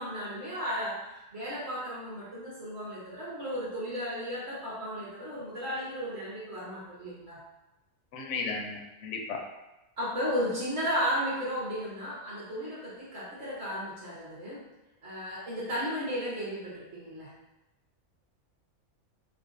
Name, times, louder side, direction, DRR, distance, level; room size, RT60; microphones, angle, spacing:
voice 1, 0.0-7.4 10.0-14.6 15.0-17.3, equal, 50° right, -7 dB, 1.2 m, -34 dB
voice 2, 8.1-9.4, left 4 dB, 65° left, 2 dB, 0.8 m, -35 dB
5.1 x 2.0 x 2.5 m, 0.98 s
omnidirectional pair, 1.5 m